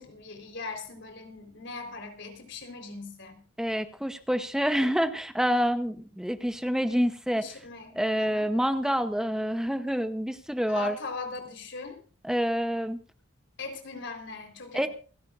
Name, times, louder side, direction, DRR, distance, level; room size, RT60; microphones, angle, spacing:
voice 1, 0.0-3.4 7.3-8.5 10.6-12.0 13.6-14.9, left 3 dB, 60° left, 5 dB, 4.1 m, -40 dB
voice 2, 3.6-7.5 7.9-11.0 12.2-13.0 14.7-14.9, equal, 5° right, 9 dB, 0.8 m, -27 dB
28.0 x 11.5 x 2.5 m, 0.37 s
head